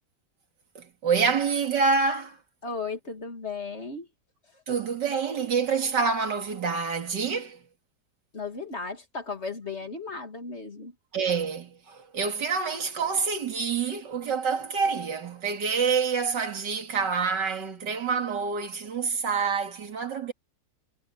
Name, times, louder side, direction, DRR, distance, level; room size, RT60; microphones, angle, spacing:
voice 1, 0.7-2.4 4.7-7.6 11.1-20.3, right 5 dB, 80° right, 2.8 m, -27 dB
voice 2, 2.6-4.1 4.5-4.6 8.3-10.9, left 4 dB, 40° left, 2.7 m, -35 dB
omnidirectional pair, 1.9 m